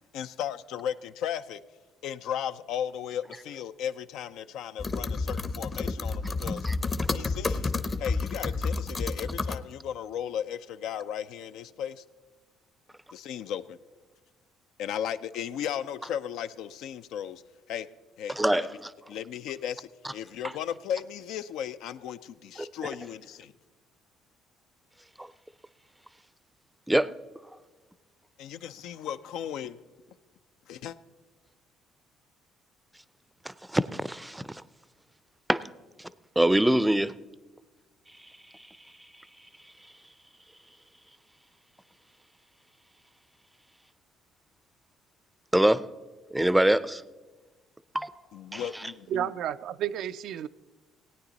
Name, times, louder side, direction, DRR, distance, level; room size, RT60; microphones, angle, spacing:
voice 1, 0.1-1.6 2.0-6.7 7.1-7.7 8.0-12.0 13.1-13.8 14.8-17.4 17.7-17.9 18.2-18.4 19.1-23.5 28.4-29.8 30.7-31.0 48.3-49.3, left 9 dB, 75° left, 12 dB, 0.4 m, -35 dB
sound 1, 4.8-9.6, left 3 dB, 35° left, 0.7 m, -30 dB
voice 2, 18.4-18.9 25.2-25.3 26.9-27.1 33.7-34.6 35.5-35.7 36.4-37.1 45.5-45.8 46.3-47.0 47.9-48.1 48.5-48.6, right 1 dB, 5° right, 17 dB, 0.4 m, -24 dB
voice 3, 49.1-50.5, right 10 dB, 70° right, 13 dB, 0.3 m, -31 dB
17.0 x 9.1 x 4.0 m, 1.3 s
supercardioid pair, 70°, 0 cm